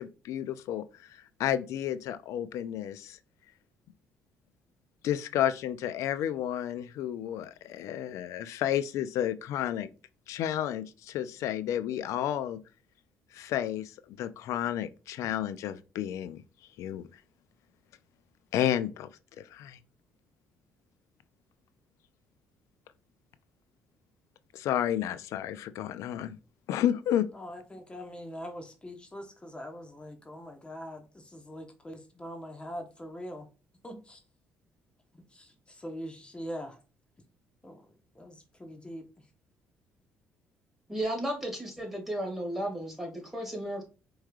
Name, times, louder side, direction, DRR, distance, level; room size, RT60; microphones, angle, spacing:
voice 1, 0.0-3.2 5.0-9.9 10.3-12.6 13.3-16.4 16.8-17.1 18.5-19.1 19.4-19.8 24.5-26.4 26.7-27.3, left 11 dB, 75° left, 0.4 m, -31 dB
voice 2, 27.3-33.5 33.8-34.2 35.3-36.8 37.6-37.8 38.1-39.0, equal, 20° left, 1.0 m, -42 dB
voice 3, 40.9-43.8, right 1 dB, 5° right, 2.1 m, -34 dB
4.6 x 3.1 x 2.4 m
supercardioid pair, 75°, 5 cm